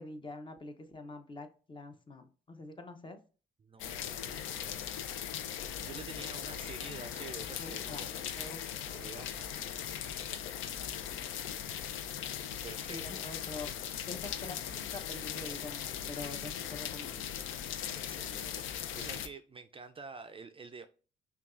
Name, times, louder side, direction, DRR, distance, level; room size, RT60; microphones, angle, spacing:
voice 1, 0.0-3.2 7.6-8.1 8.3-8.6 9.2-9.3 12.9-13.7 14.1-17.3, left 2 dB, 25° left, 0.7 m, -45 dB
voice 2, 3.6-5.0 5.8-8.3 8.9-9.8 12.6-13.2 17.9-20.8, right 4 dB, 30° right, 0.4 m, -49 dB
sound 1, 3.8-19.3, left 9 dB, 85° left, 0.4 m, -39 dB
5.8 x 2.3 x 2.4 m
cardioid pair, 90°, 20 cm